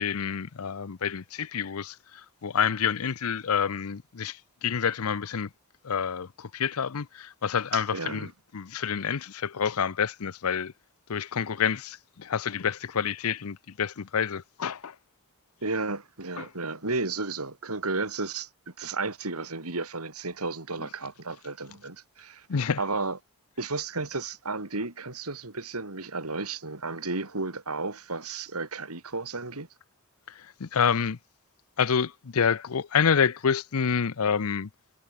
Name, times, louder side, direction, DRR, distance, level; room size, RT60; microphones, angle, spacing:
voice 1, 0.0-1.9 2.4-5.5 5.8-8.3 8.5-10.7 11.1-14.9 16.4-16.5 22.5-22.8 30.6-31.2 31.8-34.7, left 7 dB, 80° left, 0.6 m, -28 dB
voice 2, 7.7-8.3 15.6-23.2 23.6-29.7, right 3 dB, 90° right, 3.5 m, -33 dB
head